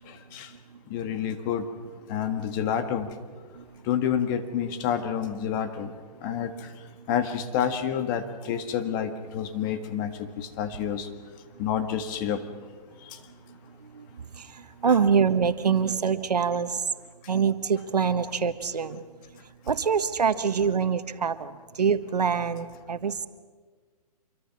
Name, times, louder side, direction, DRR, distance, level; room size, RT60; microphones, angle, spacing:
voice 1, 0.9-1.6 2.1-3.1 3.9-5.9 6.2-6.5 7.1-10.1 10.4-11.1 11.6-12.4 14.9-15.0, left 8 dB, 30° left, 7 dB, 1.8 m, -28 dB
voice 2, 14.8-16.8 17.3-19.0 19.7-21.5 21.8-23.3, right 6 dB, 85° right, 11 dB, 1.4 m, -24 dB
26.5 x 23.5 x 6.1 m, 1.5 s
hypercardioid pair, 145°, 20 cm